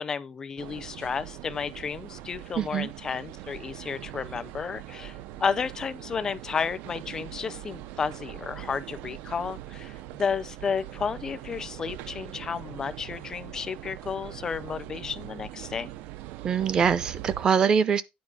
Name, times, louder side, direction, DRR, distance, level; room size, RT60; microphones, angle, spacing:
voice 1, 0.0-15.9, left 6 dB, 20° left, 0.5 m, -32 dB
sound 1, 0.6-17.5, right 14 dB, 70° right, 0.6 m, -42 dB
voice 2, 2.6-2.9 16.4-18.0, right 7 dB, 25° right, 0.6 m, -23 dB
9.6 x 4.8 x 4.8 m
cardioid pair, 170°, 3 cm